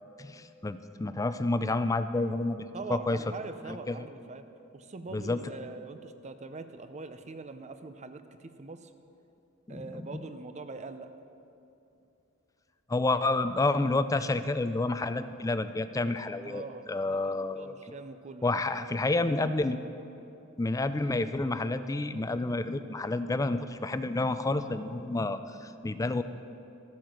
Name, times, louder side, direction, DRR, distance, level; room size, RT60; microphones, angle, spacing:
voice 1, 0.2-3.2 3.7-4.0 5.1-5.4 9.7-10.2 12.9-16.6 16.9-17.9 18.4-19.8 20.6-26.2, left 2 dB, 15° left, 11 dB, 0.4 m, -29 dB
voice 2, 2.7-4.4 4.7-8.9 9.7-11.1 16.4-18.5, right 3 dB, 35° right, 9 dB, 0.6 m, -43 dB
13.5 x 7.5 x 5.9 m, 2.8 s
head